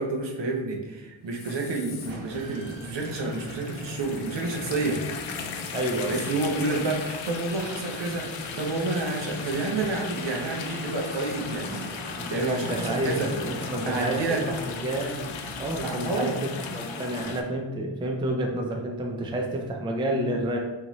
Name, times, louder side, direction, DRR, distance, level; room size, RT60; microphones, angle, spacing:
voice 1, 0.0-5.0 6.1-11.9 12.3-13.3 13.8-14.4 15.8-16.4, right 3 dB, 65° right, 1 dB, 0.8 m, -29 dB
sound 1, 1.3-17.4, left 6 dB, 85° left, 0.5 m, -37 dB
sound 2, 2.0-16.3, right 2 dB, 90° right, 0.9 m, -43 dB
voice 2, 5.7-6.3 12.2-15.3 15.6-20.6, right 1 dB, 10° right, 1 dB, 0.4 m, -29 dB
4.0 x 2.7 x 2.9 m, 1.1 s
wide cardioid pair, 85°, 47 cm